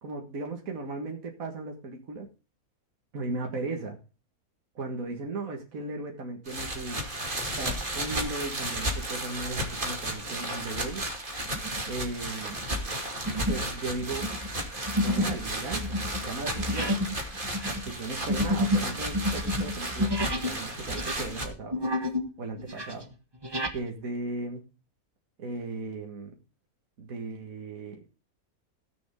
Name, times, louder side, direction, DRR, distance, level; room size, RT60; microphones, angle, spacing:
voice 1, 0.0-2.3 3.1-4.0 4.8-7.1 7.6-11.1 11.9-12.6 13.5-14.2 15.0-16.9 17.6-21.8 22.4-23.1 23.7-24.6 25.4-26.3 27.0-28.1, right 3 dB, 65° right, 2 dB, 2.1 m, -36 dB
sound 1, 6.5-21.5, right 1 dB, 35° right, 2.5 m, -34 dB
sound 2, 11.5-11.9 12.4-12.6 13.2-13.7 14.0-20.6 20.9-22.3 22.6-23.8, left 1 dB, 15° right, 1.4 m, -30 dB
17.5 x 6.9 x 3.7 m, 0.33 s
omnidirectional pair, 1.6 m